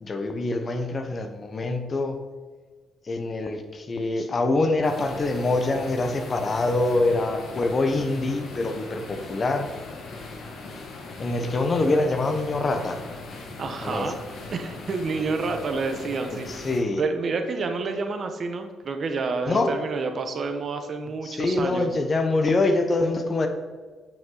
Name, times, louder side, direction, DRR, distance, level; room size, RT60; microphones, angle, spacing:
voice 1, 0.0-2.2 3.0-9.7 11.2-13.0 13.8-14.1 16.5-17.0 19.4-19.7 21.2-23.5, left 2 dB, 35° left, 6 dB, 1.0 m, -25 dB
sound 1, 4.8-16.8, left 3 dB, 65° left, 1.5 m, -39 dB
voice 2, 13.6-14.2 14.5-16.7 17.0-21.9, right 4 dB, 50° right, 6 dB, 1.0 m, -29 dB
8.7 x 5.6 x 4.0 m, 1.4 s
cardioid pair, 90°, 0 cm